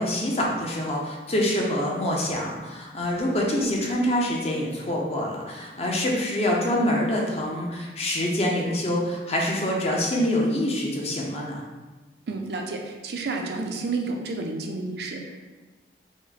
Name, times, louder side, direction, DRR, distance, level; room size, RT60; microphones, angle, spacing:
voice 1, 0.0-11.6, left 1 dB, 35° left, -2 dB, 0.7 m, -25 dB
voice 2, 12.3-15.4, right 3 dB, 60° right, 2 dB, 0.5 m, -30 dB
5.0 x 2.2 x 4.1 m, 1.2 s
head